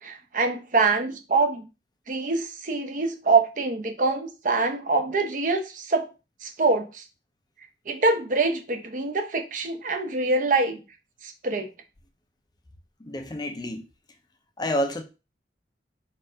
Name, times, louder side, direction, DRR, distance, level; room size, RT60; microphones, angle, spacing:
voice 1, 0.0-1.7 2.1-6.1 6.4-7.0 7.9-10.8 11.2-11.7, right 3 dB, 45° right, 0.7 m, -25 dB
voice 2, 13.0-13.8 14.6-15.0, equal, 25° left, 0.5 m, -28 dB
4.4 x 2.5 x 4.4 m
head